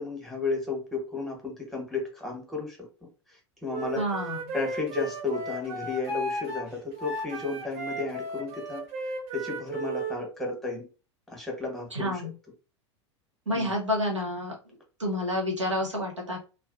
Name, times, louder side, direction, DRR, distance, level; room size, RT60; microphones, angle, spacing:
voice 1, 0.0-2.8 3.3-4.0 4.5-8.8 9.3-10.9 11.3-12.2 13.5-13.7, left 3 dB, ahead, -1 dB, 1.1 m, -33 dB
Wind instrument woodwind instrument, 3.7-10.2, right 2 dB, 55° right, 1.2 m, -35 dB
voice 2, 4.0-4.4 11.9-12.3 13.5-16.4, left 1 dB, 90° right, -1 dB, 0.8 m, -29 dB
2.4 x 2.1 x 2.5 m, 0.33 s
figure-of-eight pair, 85°, 15 cm